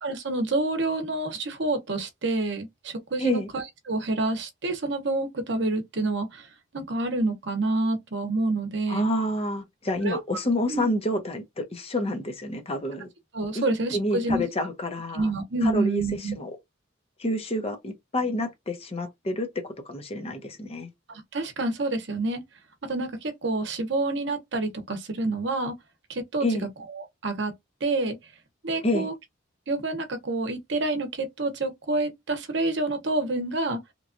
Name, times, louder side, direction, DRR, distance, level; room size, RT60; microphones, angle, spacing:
voice 1, 0.0-6.5 6.7-9.1 10.0-10.2 10.7-10.9 13.3-14.4 15.1-16.4 21.1-22.4 22.9-25.7 26.1-26.5 26.9-27.5 27.8-28.2 28.6-29.1 29.7-33.8, right 2 dB, 60° right, 0.8 m, -28 dB
voice 2, 3.2-3.5 8.9-13.1 13.5-13.6 13.9-15.3 15.6-16.5 17.2-20.9 26.4-26.7 28.8-29.1, left 1 dB, 30° left, 0.7 m, -28 dB
3.0 x 2.3 x 2.5 m
head